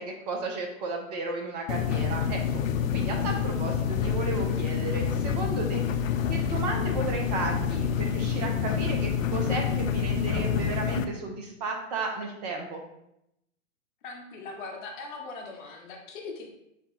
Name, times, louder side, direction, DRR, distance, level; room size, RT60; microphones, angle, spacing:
voice 1, 0.0-2.4 2.9-5.8 6.3-12.8, right 3 dB, 35° right, 2 dB, 0.6 m, -33 dB
sound 1, 1.7-11.1, left 7 dB, 85° left, 0.5 m, -27 dB
voice 2, 14.0-16.5, left 3 dB, 40° left, 0 dB, 1.0 m, -40 dB
4.1 x 2.3 x 4.6 m, 0.82 s
hypercardioid pair, 120°, 38 cm